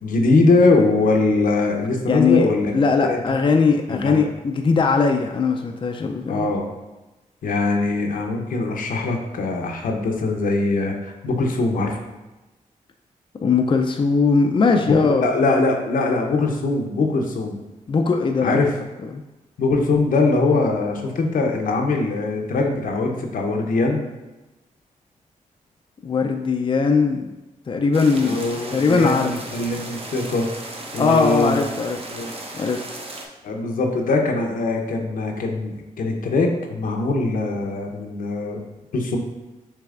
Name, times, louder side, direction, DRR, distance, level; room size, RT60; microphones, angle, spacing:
voice 1, 0.0-2.7 3.1-3.2 3.9-4.2 6.3-6.7 7.4-12.0 14.7-17.6 18.4-18.7 19.6-24.0 28.2-30.6 30.9-31.6 32.1-32.3 33.4-38.6 38.9-39.2, left 3 dB, 75° left, 2 dB, 0.7 m, -22 dB
voice 2, 2.1-2.5 2.7-6.5 13.4-15.3 17.9-18.6 19.0-19.2 26.0-27.3 27.7-28.4 28.7-29.3 31.0-32.0 32.5-32.8, left 4 dB, 35° left, 3 dB, 0.4 m, -19 dB
sound 1, 27.9-33.3, right 2 dB, 40° right, 0.9 m, -36 dB
6.5 x 3.3 x 2.4 m, 1.1 s
cardioid pair, 60°, 14 cm